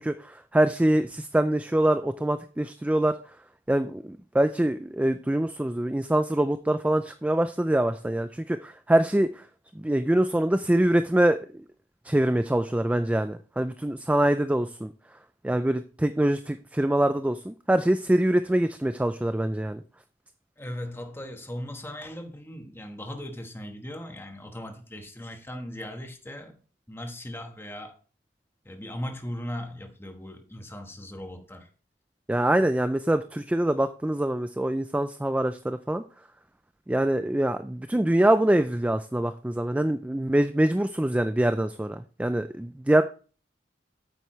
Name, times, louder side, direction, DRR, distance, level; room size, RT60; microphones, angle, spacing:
voice 1, 0.0-3.2 3.7-9.4 9.8-11.6 12.0-14.9 15.4-19.8 32.3-36.0 36.9-43.0, right 1 dB, 10° right, 0.3 m, -24 dB
voice 2, 20.6-26.6 26.9-28.0 28.6-31.7 32.6-32.7, left 1 dB, 15° left, 1.2 m, -38 dB
9.0 x 8.2 x 3.1 m
head